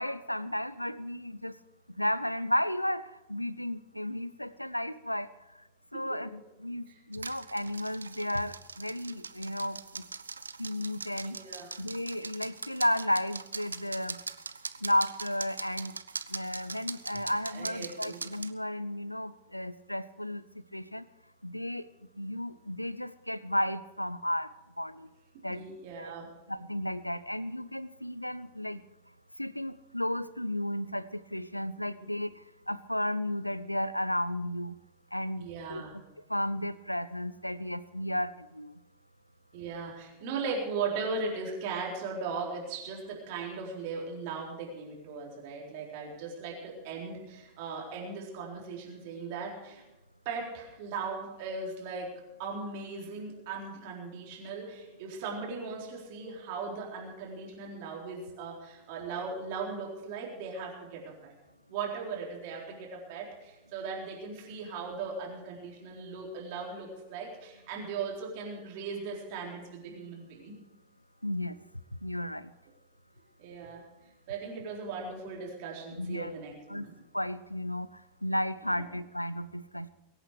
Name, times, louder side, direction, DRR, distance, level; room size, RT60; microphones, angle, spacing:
voice 1, 0.0-1.5 2.0-5.3 5.9-10.0 10.6-11.4 11.8-14.2 14.8-16.0 16.3-20.4 20.7-21.0 21.4-21.9 22.2-24.5 24.8-25.1 25.4-25.6 26.0-26.1 26.5-28.8 29.4-32.3 32.7-34.8 35.1-36.0 36.3-38.8 71.2-71.6 72.0-72.5 75.9-76.3 76.7-76.9 77.1-77.9 78.2-79.9, left 1 dB, 90° left, 18 dB, 0.5 m, -33 dB
sound 1, 7.1-18.5, right 4 dB, 75° right, 0.6 m, -41 dB
voice 2, 11.2-11.7 17.1-17.2 17.5-18.2 25.5-26.3 32.0-32.1 35.4-35.9 39.5-49.8 50.2-52.1 52.4-61.3 61.7-70.6 73.4-73.8 74.3-76.9 78.7-78.9, right 4 dB, 45° right, -1 dB, 4.0 m, -38 dB
23.0 x 9.0 x 5.0 m, 0.99 s
figure-of-eight pair, 90°, 0 cm